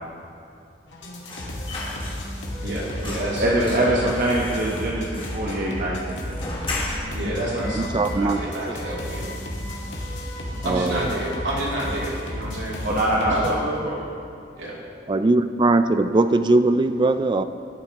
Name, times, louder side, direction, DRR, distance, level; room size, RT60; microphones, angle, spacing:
sound 1, 0.9-13.5, left 1 dB, 90° left, 1.6 m, -33 dB
sound 2, 1.2-2.5 2.7-7.3 7.6-7.7 8.0-8.9 9.2-9.4 9.7-10.4 10.7-10.9, left 2 dB, 30° left, 1.5 m, -36 dB
voice 1, 2.6-4.1 7.1-9.2 10.6-12.8 13.2-13.5 14.6-14.8, right 1 dB, 80° right, -6 dB, 2.7 m, -29 dB
voice 2, 3.4-6.2 12.8-14.0, right 1 dB, 50° right, -4 dB, 1.0 m, -23 dB
Wind instrument woodwind instrument, 7.5-14.0, left 1 dB, 55° left, 2.0 m, -43 dB
voice 3, 7.7-8.7 10.6-11.1 15.1-17.4, right 2 dB, 25° right, 10 dB, 0.3 m, -20 dB
13.0 x 10.5 x 2.9 m, 2.4 s
head